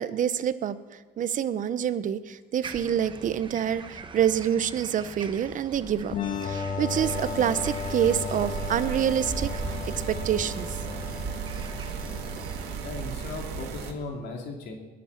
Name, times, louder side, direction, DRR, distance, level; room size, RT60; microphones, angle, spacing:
voice 1, 0.0-6.2 6.4-9.5 9.9-10.8, right 9 dB, 50° right, 14 dB, 0.9 m, -27 dB
sound 1, 2.6-12.8, right 4 dB, 30° right, 1.3 m, -41 dB
sound 2, 6.1-13.6, left 5 dB, 50° left, 1.5 m, -35 dB
sound 3, 6.9-13.9, right 6 dB, 90° right, 2.0 m, -36 dB
voice 2, 12.8-14.7, left 3 dB, 75° left, 2 dB, 3.1 m, -37 dB
20.5 x 8.5 x 7.4 m, 1.3 s
cardioid pair, 110°, 17 cm